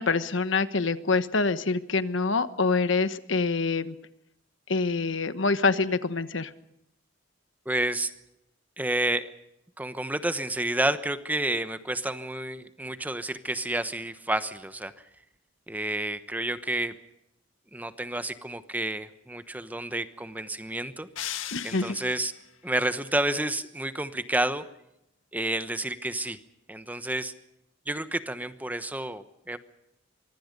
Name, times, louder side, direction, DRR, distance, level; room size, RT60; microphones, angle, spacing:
voice 1, 0.0-3.9 4.7-6.5 21.5-22.0, left 4 dB, 70° left, 12 dB, 1.2 m, -26 dB
voice 2, 7.6-8.1 8.8-9.3 9.8-14.9 15.7-16.9 17.7-21.1 21.6-22.3 22.6-24.6 25.3-26.4 26.7-27.3 27.9-29.6, right 1 dB, 10° right, 11 dB, 1.0 m, -30 dB
sound 1, 21.2-22.4, left 11 dB, 85° left, 1.9 m, -37 dB
24.5 x 24.0 x 5.3 m, 0.83 s
head